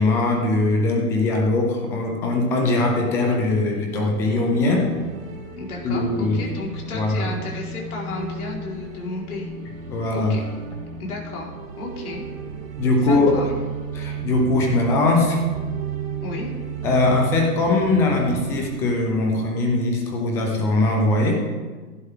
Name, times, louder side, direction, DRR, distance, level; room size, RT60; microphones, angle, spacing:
voice 1, 0.0-4.9 5.8-6.5 6.9-7.3 9.9-10.4 12.8-13.4 13.9-15.4 16.8-21.4, left 2 dB, 5° left, 1 dB, 0.5 m, -21 dB
sound 1, 4.0-20.1, right 6 dB, 60° right, 3.2 m, -34 dB
voice 2, 5.6-9.5 10.1-10.4 11.0-11.5 11.8-12.2 13.0-13.5 16.2-16.5, left 3 dB, 70° left, -3 dB, 4.5 m, -32 dB
16.0 x 11.5 x 3.7 m, 1.4 s
hypercardioid pair, 150°, 45 cm